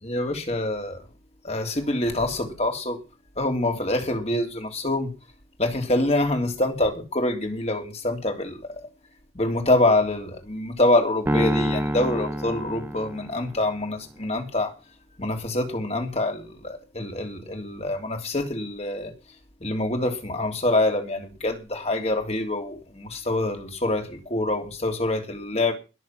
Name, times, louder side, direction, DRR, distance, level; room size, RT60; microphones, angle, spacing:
voice 1, 0.0-1.0 1.4-3.0 3.4-5.1 5.6-8.9 9.3-14.7 15.2-19.1 19.6-25.7, left 2 dB, 35° left, 3.3 m, -25 dB
Piano, 11.3-13.7, equal, 10° right, 1.5 m, -27 dB
21.5 x 7.1 x 6.0 m
head